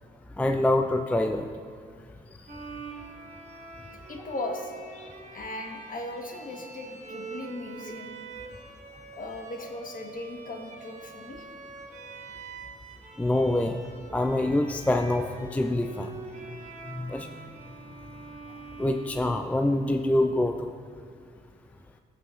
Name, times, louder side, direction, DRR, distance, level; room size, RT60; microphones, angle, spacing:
voice 1, 0.4-1.5 13.2-13.8 14.1-16.1 16.9-17.3 18.8-20.7, left 1 dB, 10° left, 6 dB, 0.4 m, -25 dB
Bowed string instrument, 2.5-19.9, right 4 dB, 45° right, 1.3 m, -45 dB
voice 2, 4.1-4.7 5.3-8.1 9.1-11.5, left 2 dB, 50° left, 2 dB, 1.2 m, -37 dB
14.5 x 5.7 x 2.5 m, 2.2 s
cardioid pair, 65°, 18 cm